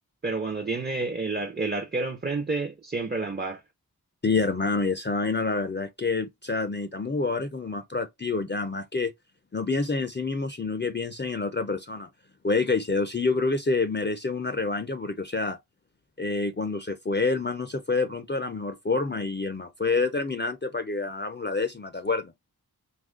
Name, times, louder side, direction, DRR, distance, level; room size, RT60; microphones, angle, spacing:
voice 1, 0.2-3.6, right 3 dB, 25° right, 0.5 m, -29 dB
voice 2, 4.2-9.1 9.5-12.1 12.4-15.6 16.2-22.3, left 3 dB, 30° left, 0.4 m, -27 dB
3.0 x 2.3 x 3.6 m
wide cardioid pair, 65°, 38 cm